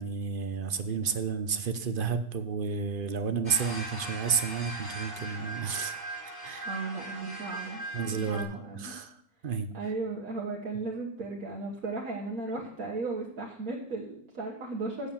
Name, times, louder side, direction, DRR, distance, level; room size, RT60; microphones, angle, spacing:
voice 1, 0.0-5.9 6.2-6.7 7.9-8.5 8.7-9.1 9.4-9.7, right 6 dB, 45° right, 9 dB, 0.8 m, -31 dB
sound 1, 3.4-8.4, right 2 dB, 30° left, 4.3 m, -39 dB
voice 2, 6.6-9.0 9.7-15.1, right 3 dB, 75° right, -3 dB, 1.9 m, -36 dB
8.2 x 7.6 x 7.0 m, 0.65 s
omnidirectional pair, 1.5 m